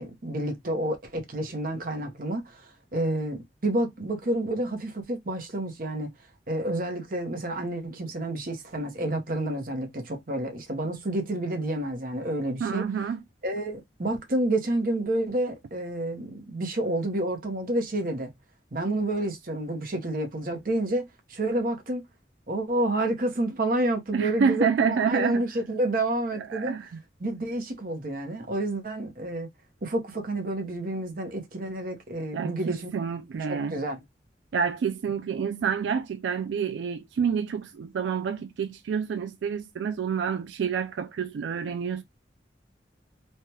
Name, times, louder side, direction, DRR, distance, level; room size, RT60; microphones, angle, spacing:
voice 1, 0.0-6.1 6.5-12.9 13.4-18.3 18.7-22.0 22.5-26.7 27.2-29.5 29.8-32.9 33.5-34.0, right 1 dB, 50° right, 0.8 m, -29 dB
voice 2, 12.6-13.2 24.1-25.4 26.4-26.9 32.3-33.8 34.5-42.0, right 6 dB, 90° right, 0.3 m, -28 dB
3.3 x 2.2 x 2.8 m
head